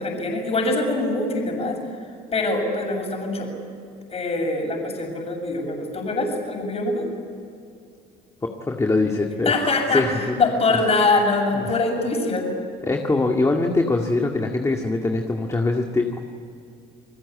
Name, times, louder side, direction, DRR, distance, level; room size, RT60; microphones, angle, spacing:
voice 1, 0.0-1.8 2.3-3.5 4.1-7.0 9.4-12.5, left 3 dB, 35° left, 2 dB, 7.4 m, -23 dB
voice 2, 8.4-9.5 9.9-10.4 11.5-11.6 12.8-16.2, left 2 dB, 20° left, 2 dB, 2.2 m, -22 dB
30.0 x 20.5 x 8.5 m, 2.5 s
cardioid pair, 110°, 17 cm